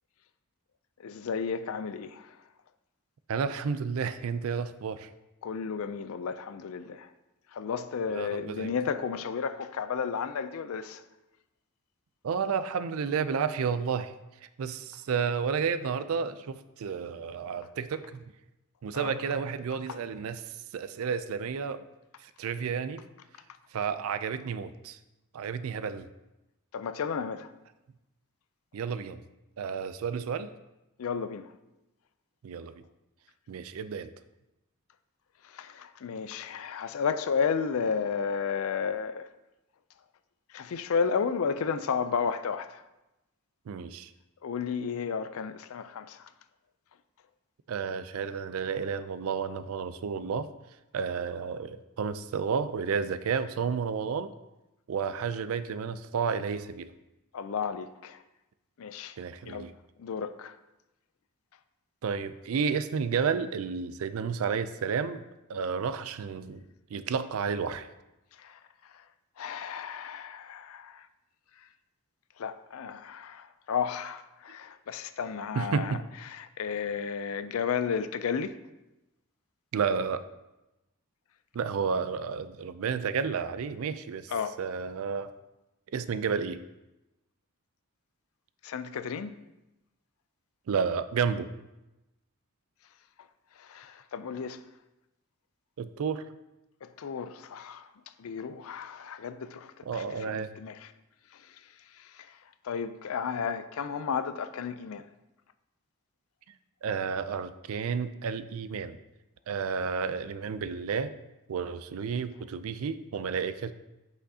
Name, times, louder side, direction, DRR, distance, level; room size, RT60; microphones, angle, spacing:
voice 1, 1.0-2.4 5.4-7.1 7.5-11.0 18.9-19.1 19.9-20.0 26.7-27.5 31.0-31.5 35.4-39.3 40.5-42.8 44.4-46.3 57.3-58.2 58.8-59.2 59.5-59.7 60.0-60.6 68.4-69.0 69.4-71.1 71.6-71.7 72.4-76.0 76.2-78.5 84.3-84.6 88.6-89.3 93.6-94.6 96.8-97.9 98.2-100.9 101.3-102.4 102.6-105.1, left 6 dB, 65° left, 0.4 m, -33 dB
voice 2, 3.3-5.1 8.1-8.7 12.2-14.1 14.6-18.2 18.8-20.4 20.7-21.8 22.2-23.0 23.7-25.0 25.3-26.1 28.7-29.2 29.6-30.5 32.4-32.8 33.5-34.1 43.7-44.1 47.7-50.5 50.9-54.3 54.9-56.9 59.2-59.7 62.0-65.2 65.5-66.6 66.9-67.9 75.6-76.0 79.7-80.2 81.5-84.3 84.6-85.3 85.9-86.6 90.7-91.5 95.8-96.2 99.9-100.5 106.8-109.0 109.5-111.1 111.5-113.7, right 6 dB, 65° right, 0.4 m, -31 dB
7.8 x 6.3 x 2.7 m
head